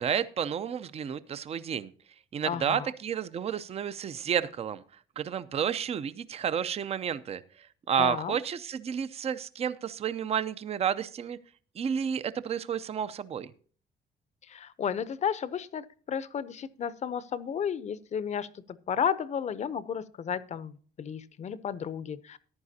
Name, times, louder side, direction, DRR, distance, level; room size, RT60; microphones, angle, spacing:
voice 1, 0.0-1.9 2.3-4.8 5.2-11.4 11.8-13.5, right 8 dB, 35° right, 15 dB, 0.6 m, -31 dB
voice 2, 2.4-2.9 8.0-8.3 14.5-22.4, left 7 dB, 45° left, 16 dB, 0.7 m, -33 dB
14.5 x 10.5 x 2.8 m, 0.42 s
cardioid pair, 130°, 17 cm